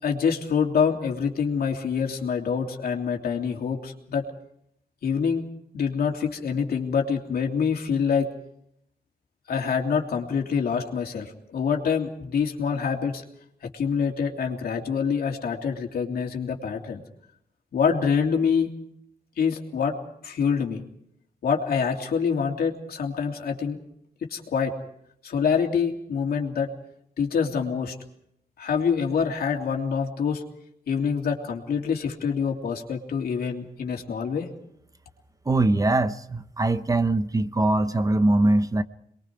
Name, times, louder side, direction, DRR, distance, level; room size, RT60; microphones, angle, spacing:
voice 1, 0.0-4.2 5.0-5.4 5.7-8.3 9.5-13.2 13.6-17.0 17.7-18.7 19.4-19.9 20.2-20.8 21.4-23.8 24.3-24.7 25.2-26.7 27.2-28.0 28.6-30.4 30.9-34.5, left 6 dB, 80° left, 2 dB, 3.1 m, -26 dB
voice 2, 35.5-38.8, right 2 dB, 20° right, 12 dB, 0.8 m, -22 dB
28.5 x 22.0 x 4.7 m, 0.74 s
wide cardioid pair, 130°, 16 cm